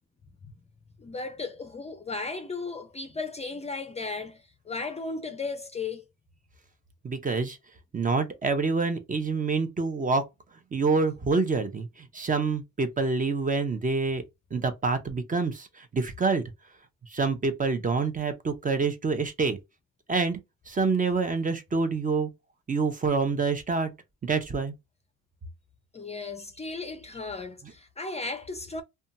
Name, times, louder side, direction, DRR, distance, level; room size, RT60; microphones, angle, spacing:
voice 1, 1.0-4.4 4.7-6.0 25.9-28.8, left 3 dB, 20° left, 0.5 m, -35 dB
voice 2, 7.0-7.6 7.9-10.2 10.7-14.2 14.5-16.4 17.1-19.6 20.1-20.4 20.7-22.3 22.7-23.9 24.2-24.7, right 4 dB, 25° right, 0.6 m, -27 dB
2.7 x 2.3 x 2.6 m
cardioid pair, 90°, 30 cm